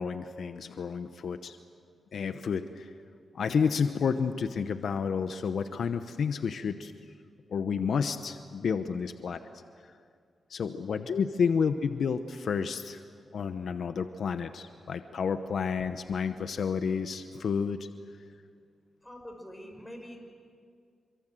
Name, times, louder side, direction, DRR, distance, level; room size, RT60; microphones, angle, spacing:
voice 1, 0.0-1.6 2.1-2.9 3.3-6.9 7.5-9.4 10.5-13.0 13.3-17.8, left 6 dB, 70° left, 9 dB, 1.0 m, -30 dB
voice 2, 19.0-20.2, equal, 10° left, 2 dB, 6.0 m, -45 dB
27.0 x 25.0 x 7.8 m, 2.1 s
cardioid pair, 95°, 0 cm